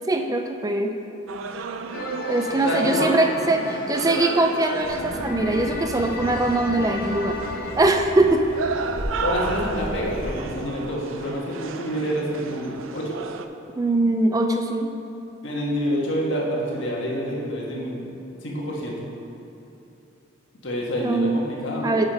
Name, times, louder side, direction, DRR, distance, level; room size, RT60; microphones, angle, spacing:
voice 1, 0.1-0.9 2.3-7.4 7.8-8.5 13.8-14.9 21.0-21.4 21.8-22.1, right 2 dB, 20° right, 4 dB, 0.4 m, -22 dB
sound 1, 1.3-13.4, right 5 dB, 80° right, 0.4 m, -34 dB
sound 2, 1.9-7.8, left 3 dB, 50° left, 0.6 m, -34 dB
voice 2, 2.6-3.1 9.2-13.2 15.4-18.1 18.4-19.1 20.6-22.1, equal, 65° left, -3 dB, 1.5 m, -27 dB
Child speech kid speaking, 4.8-10.4, equal, 60° right, 1.9 m, -36 dB
8.5 x 5.2 x 5.1 m, 3.0 s
head